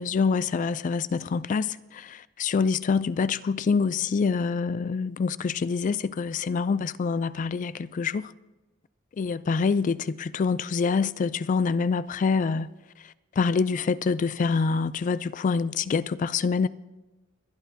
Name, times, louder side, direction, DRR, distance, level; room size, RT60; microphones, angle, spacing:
voice 1, 0.0-1.7 2.4-8.3 9.2-12.7 13.4-16.7, left 5 dB, 40° left, 0.3 m, -25 dB
24.0 x 11.5 x 2.7 m
head